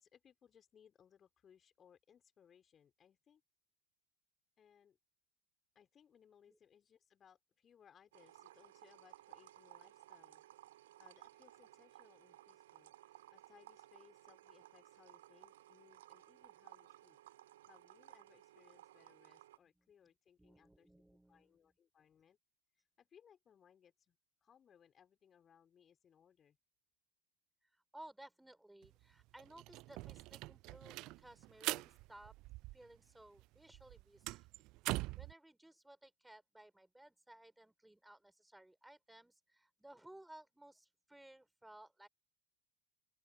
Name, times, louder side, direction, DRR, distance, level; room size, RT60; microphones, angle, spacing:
voice 1, 0.0-3.4 4.6-5.0 5.8-10.4 10.7-17.2 17.7-20.9 21.3-22.4 23.0-26.6, left 8 dB, 30° left, 5.3 m, -67 dB
sound 1, 8.1-19.6, right 14 dB, 70° right, 3.9 m, -59 dB
voice 2, 19.7-20.1 20.4-21.7 27.7-32.3 32.7-34.4 35.2-42.1, right 1 dB, 5° right, 4.6 m, -59 dB
sound 2, 28.8-28.9 29.2-33.1 33.4-35.3, right 21 dB, 50° right, 0.4 m, -43 dB
open air
figure-of-eight pair, 80°, 0 cm